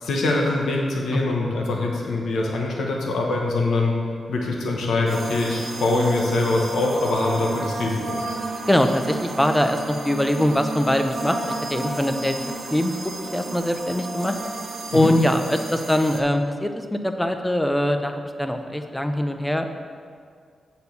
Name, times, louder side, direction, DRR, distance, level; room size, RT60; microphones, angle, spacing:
voice 1, 0.0-3.9 4.3-8.2 14.9-15.1, left 2 dB, 90° left, -1 dB, 1.1 m, -23 dB
sound 1, 5.1-16.2, right 2 dB, 50° right, 0.9 m, -32 dB
voice 2, 8.7-12.4 12.7-13.0 13.3-14.4 14.9-19.7, left 1 dB, 5° left, 6 dB, 0.6 m, -22 dB
8.2 x 4.3 x 7.0 m, 2.1 s
wide cardioid pair, 110°, 0 cm